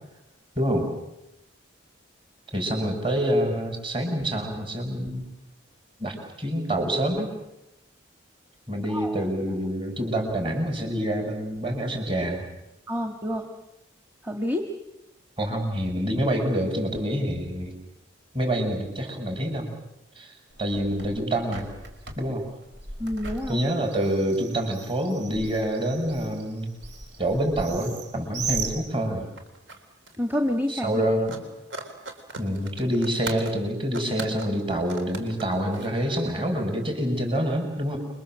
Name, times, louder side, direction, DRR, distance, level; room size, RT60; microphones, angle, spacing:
voice 1, 0.6-0.9 2.5-5.2 6.0-7.3 8.7-12.4 15.4-17.7 18.3-19.7 20.1-20.3 20.6-21.7 22.2-22.5 23.5-26.7 27.2-29.3 30.7-31.4 32.4-38.0, equal, 25° right, 3 dB, 6.5 m, -27 dB
voice 2, 8.9-9.2 12.9-13.5 14.2-14.7 23.0-23.6 30.2-31.0, left 1 dB, 10° right, 4 dB, 1.6 m, -28 dB
Bird, 20.5-29.4, right 4 dB, 60° right, 4.7 m, -38 dB
sound 1, 28.6-28.7 28.9-29.8 30.1-31.0 31.3-33.6 33.9-36.3 36.6-36.7, right 3 dB, 75° right, 3.9 m, -39 dB
29.0 x 23.5 x 7.7 m, 0.92 s
head